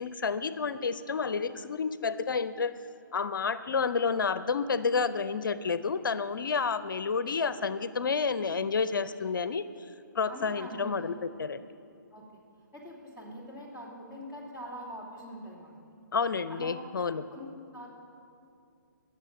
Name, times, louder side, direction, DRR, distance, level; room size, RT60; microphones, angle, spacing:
voice 1, 0.0-2.7 3.1-9.6 10.1-11.6 16.1-17.3, left 5 dB, 75° left, 13 dB, 0.6 m, -30 dB
voice 2, 10.3-10.9 12.1-12.2 12.7-15.8 16.5-16.8 17.3-17.9, equal, 10° right, -6 dB, 3.1 m, -44 dB
17.0 x 7.2 x 7.6 m, 2.5 s
hypercardioid pair, 145°, 11 cm